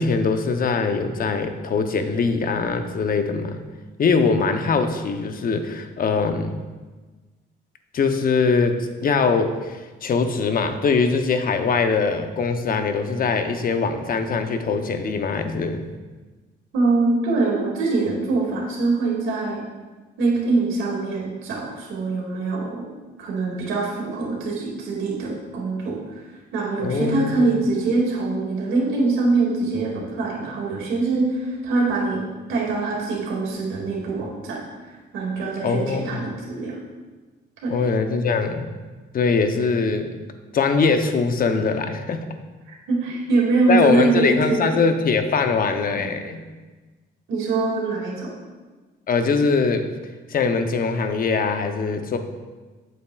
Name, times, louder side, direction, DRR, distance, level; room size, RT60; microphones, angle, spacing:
voice 1, 0.0-3.6 4.0-6.6 7.9-15.9 26.8-27.6 35.6-36.2 37.7-38.7 39.1-40.1 40.5-42.3 43.7-46.5 49.1-49.9 50.3-52.2, left 4 dB, 45° left, 7 dB, 0.7 m, -22 dB
voice 2, 16.7-19.6 20.2-22.8 23.2-26.0 26.5-34.6 35.1-36.8 37.6-37.7 42.7-44.6 46.0-46.1 47.3-48.3, right 3 dB, 85° right, -3 dB, 2.2 m, -23 dB
8.5 x 7.0 x 2.3 m, 1.3 s
cardioid pair, 90°, 20 cm